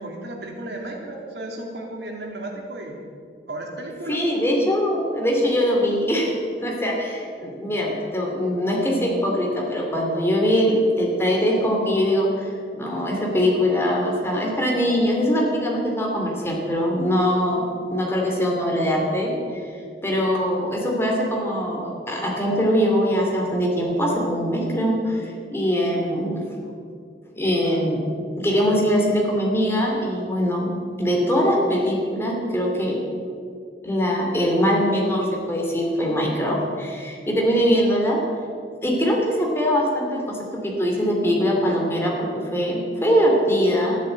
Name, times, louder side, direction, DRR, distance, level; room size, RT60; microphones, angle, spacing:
voice 1, 0.0-3.0 3.5-4.2, right 1 dB, 80° right, 1 dB, 2.8 m, -34 dB
voice 2, 4.1-17.6 17.9-19.6 20.0-26.4 27.3-28.0 28.4-30.7 31.0-33.0 33.8-38.2 38.8-44.0, equal, 15° left, -1 dB, 2.7 m, -22 dB
13.0 x 11.5 x 8.1 m, 2.4 s
head